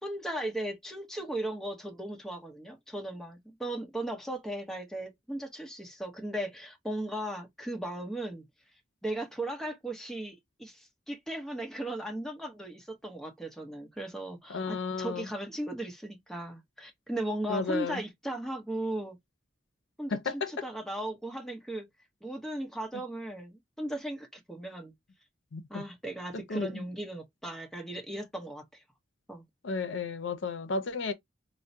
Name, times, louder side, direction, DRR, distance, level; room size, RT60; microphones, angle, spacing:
voice 1, 0.0-8.4 9.0-19.2 20.0-21.9 22.2-24.9 25.7-28.8 29.3-29.4, right 1 dB, ahead, 0.9 m, -37 dB
voice 2, 14.5-15.3 17.5-18.0 20.1-20.5 25.5-25.8 26.3-26.9 29.6-31.1, left 4 dB, 85° left, 0.6 m, -33 dB
4.6 x 2.1 x 2.7 m
head